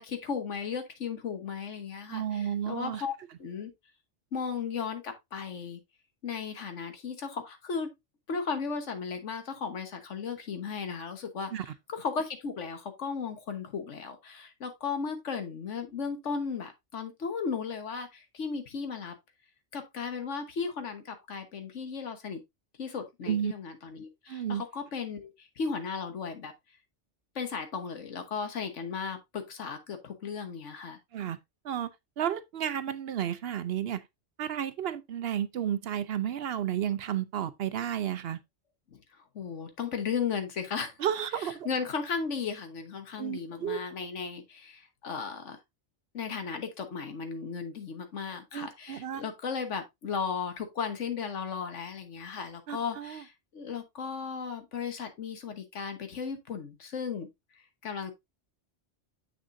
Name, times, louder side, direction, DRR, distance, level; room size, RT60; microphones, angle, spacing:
voice 1, 0.0-3.1 3.4-3.7 4.3-5.8 6.2-7.9 8.3-19.1 19.7-22.4 22.8-26.5 27.3-31.0 38.9-41.0 41.3-45.6 46.1-57.3 57.8-58.1, left 5 dB, 85° left, 1.5 m, -35 dB
voice 2, 2.1-3.0 11.5-11.7 23.3-23.5 24.3-24.6 31.1-31.4 31.6-31.9 32.2-34.0 34.4-38.4 41.0-41.7 43.2-43.8 48.5-49.2 52.7-53.2, right 10 dB, 65° right, 0.8 m, -32 dB
7.3 x 6.3 x 2.6 m
omnidirectional pair, 1.2 m